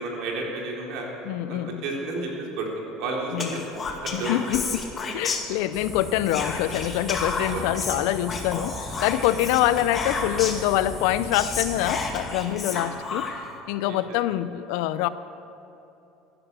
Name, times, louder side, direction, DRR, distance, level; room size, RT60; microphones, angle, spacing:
voice 1, 0.0-1.1 1.5-2.3 2.6-2.7 3.0-3.6 4.0-4.6 7.5-7.8 12.7-12.9 13.9-14.2, right 2 dB, 70° right, -1 dB, 3.7 m, -32 dB
voice 2, 1.2-1.8 3.3-3.6 4.1-4.8 5.1-13.3 13.7-15.1, left 13 dB, 80° left, 15 dB, 0.6 m, -25 dB
Whispering, 3.4-5.9 6.3-10.7 11.0-11.1 11.3-13.6, left 4 dB, 30° left, 2.0 m, -31 dB
sound 1, 5.7-12.1, equal, 10° right, 3.7 m, -38 dB
15.5 x 11.0 x 6.9 m, 2.9 s
supercardioid pair, 115°, 0 cm